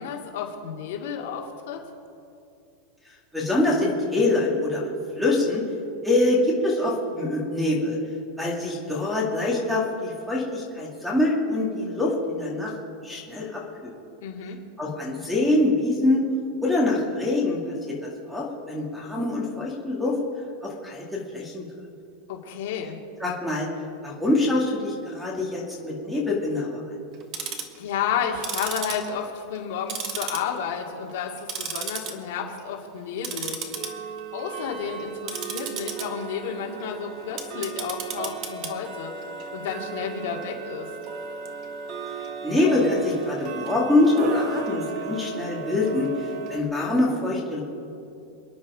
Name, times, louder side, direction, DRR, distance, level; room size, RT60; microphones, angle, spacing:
voice 1, 0.0-1.8 14.2-14.6 22.3-23.0 27.8-33.7 34.3-39.1 39.5-40.9, left 7 dB, 55° left, 0 dB, 2.5 m, -31 dB
voice 2, 3.3-4.9 5.2-5.6 6.0-8.0 8.4-12.7 13.0-13.9 14.8-16.2 16.6-17.6 18.0-20.2 20.6-21.6 23.2-23.7 24.0-26.8 42.4-46.1 46.5-47.6, left 2 dB, ahead, -1 dB, 2.2 m, -24 dB
Tick-tock, 27.1-27.8 28.3-29.6 29.9-30.8 31.1-32.1 32.5-32.7 33.2-46.6, right 6 dB, 30° right, 1.3 m, -35 dB
28.5 x 10.0 x 4.9 m, 2.6 s
supercardioid pair, 175°, 0 cm